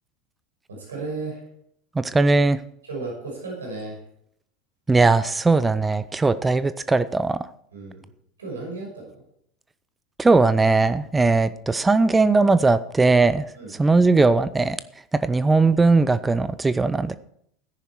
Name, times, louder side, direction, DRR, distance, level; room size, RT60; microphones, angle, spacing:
voice 1, 0.7-1.4 2.9-4.0 7.7-8.0 8.4-9.2 13.5-13.7, right 3 dB, 80° right, -2 dB, 5.7 m, -34 dB
voice 2, 2.0-2.6 4.9-7.4 10.2-13.4 13.8-14.8 15.2-17.1, right 3 dB, 15° right, 14 dB, 0.7 m, -19 dB
14.0 x 10.0 x 4.7 m, 0.68 s
figure-of-eight pair, 80°, 0 cm